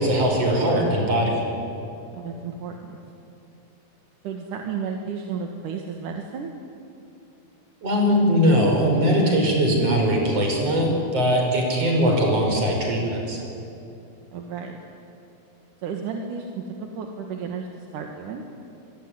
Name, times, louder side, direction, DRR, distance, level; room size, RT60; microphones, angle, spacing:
voice 1, 0.0-1.4 7.8-13.4, equal, 50° right, 1 dB, 6.6 m, -21 dB
voice 2, 2.1-3.0 4.2-6.5 14.3-14.8 15.8-16.6 17.0-17.7 17.9-18.4, right 6 dB, 80° right, 3 dB, 3.2 m, -32 dB
26.0 x 21.5 x 9.7 m, 2.7 s
omnidirectional pair, 3.6 m